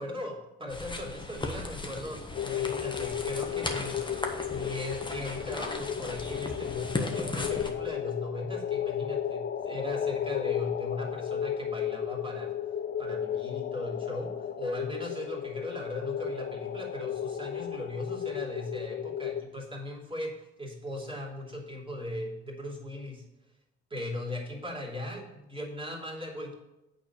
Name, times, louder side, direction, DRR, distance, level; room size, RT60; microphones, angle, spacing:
voice 1, 0.0-12.5 13.0-23.2 23.9-26.5, left 1 dB, 15° right, -1 dB, 2.8 m, -38 dB
sound 1, 0.7-7.7, left 2 dB, 15° left, 1.3 m, -37 dB
sound 2, 2.3-19.4, left 9 dB, 35° left, 0.7 m, -34 dB
8.6 x 4.2 x 7.1 m, 0.91 s
hypercardioid pair, 45°, 32 cm